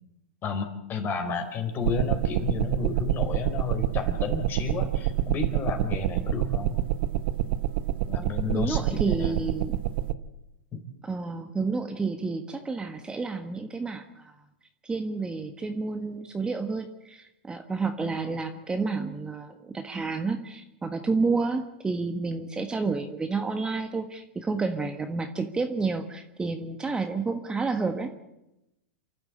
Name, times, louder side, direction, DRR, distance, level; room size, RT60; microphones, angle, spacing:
voice 1, 0.4-6.8 8.1-9.4 10.7-10.8, left 4 dB, 35° left, 6 dB, 4.3 m, -31 dB
sound 1, 1.8-10.1, right 12 dB, 65° right, 1.2 m, -27 dB
voice 2, 8.5-9.7 11.0-14.3 14.8-28.1, right 4 dB, 15° right, 7 dB, 1.4 m, -30 dB
28.5 x 12.0 x 8.7 m, 0.91 s
hypercardioid pair, 115°, 6 cm